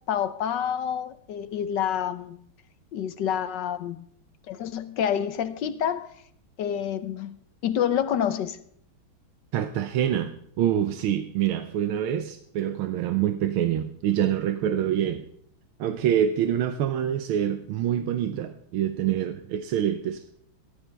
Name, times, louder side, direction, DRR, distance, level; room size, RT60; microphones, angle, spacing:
voice 1, 0.1-2.4 2.9-4.1 4.5-6.1 6.6-8.6, left 9 dB, 65° left, 1.3 m, -28 dB
voice 2, 9.5-15.2 15.8-20.3, right 10 dB, 85° right, 1.7 m, -26 dB
17.0 x 13.5 x 3.4 m
omnidirectional pair, 2.3 m